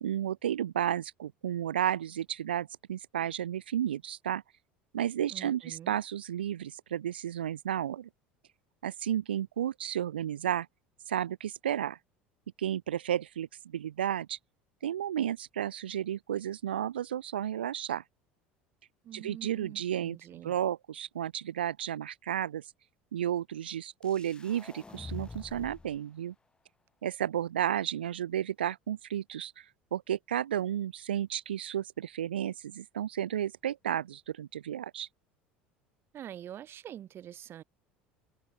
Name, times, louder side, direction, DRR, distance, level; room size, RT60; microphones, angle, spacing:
voice 1, 0.0-4.4 4.9-8.1 8.8-10.7 11.0-12.0 12.6-14.4 14.8-18.0 19.1-20.2 20.4-22.7 23.1-26.3 27.0-35.1, right 10 dB, 85° right, 1.0 m, -32 dB
voice 2, 5.3-6.0 19.0-20.6 36.1-37.6, right 11 dB, 45° right, 4.3 m, -45 dB
sound 1, 24.0-26.0, left 3 dB, 15° left, 3.5 m, -45 dB
open air
hypercardioid pair, 75°, 5 cm